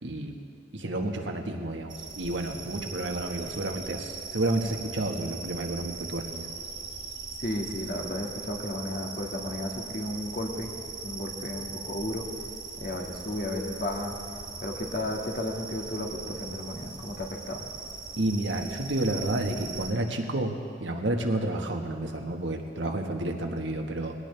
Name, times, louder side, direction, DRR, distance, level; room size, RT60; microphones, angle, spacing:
voice 1, 0.0-0.4 0.7-6.5 18.2-20.5 20.8-24.1, right 1 dB, 85° right, 2 dB, 1.5 m, -30 dB
sound 1, 1.9-19.9, right 4 dB, 25° right, 1.7 m, -40 dB
voice 2, 7.4-10.7 11.0-12.3 12.8-14.2 14.6-17.7, left 1 dB, 55° left, 0 dB, 1.9 m, -33 dB
20.5 x 17.5 x 3.4 m, 2.7 s
head